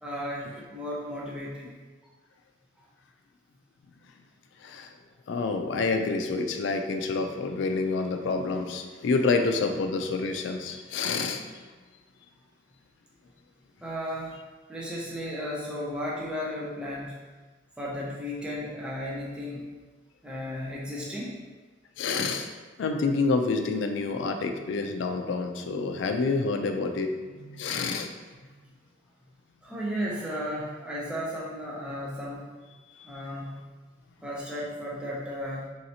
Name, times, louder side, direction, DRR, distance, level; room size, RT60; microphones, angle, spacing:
voice 1, 0.0-1.7 2.0-2.1 13.8-14.4 14.7-17.2 17.8-19.7 20.2-21.4 29.6-32.5 33.0-33.5 34.2-35.7, equal, 5° right, -6 dB, 0.4 m, -34 dB
voice 2, 4.6-4.9 5.3-11.6 22.0-22.5 22.8-28.1, left 4 dB, 75° left, 5 dB, 0.3 m, -28 dB
3.1 x 2.7 x 2.7 m, 1.3 s
head